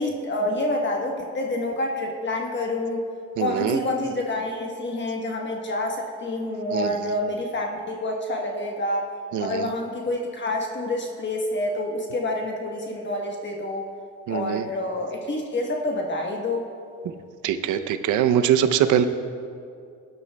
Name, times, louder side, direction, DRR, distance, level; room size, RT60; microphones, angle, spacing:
voice 1, 0.0-3.0 3.4-9.1 9.4-13.8 14.3-16.7, left 1 dB, 40° left, 1 dB, 1.2 m, -28 dB
voice 2, 3.4-3.8 6.7-7.1 9.3-9.7 14.3-14.7 17.4-19.0, right 9 dB, 80° right, 10 dB, 0.7 m, -23 dB
17.0 x 11.0 x 2.2 m, 2.4 s
cardioid pair, 90°, 30 cm